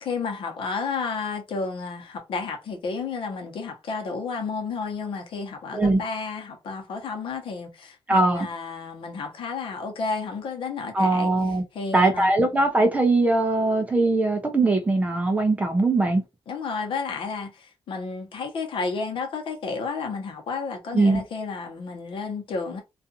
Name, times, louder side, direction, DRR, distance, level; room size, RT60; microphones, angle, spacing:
voice 1, 0.0-11.3 11.7-12.3 16.5-22.8, left 4 dB, 65° left, 0.9 m, -31 dB
voice 2, 8.1-8.5 10.9-11.6 11.9-16.2 20.9-21.2, right 2 dB, 15° right, 0.5 m, -21 dB
2.4 x 2.4 x 2.6 m
wide cardioid pair, 180°, 9 cm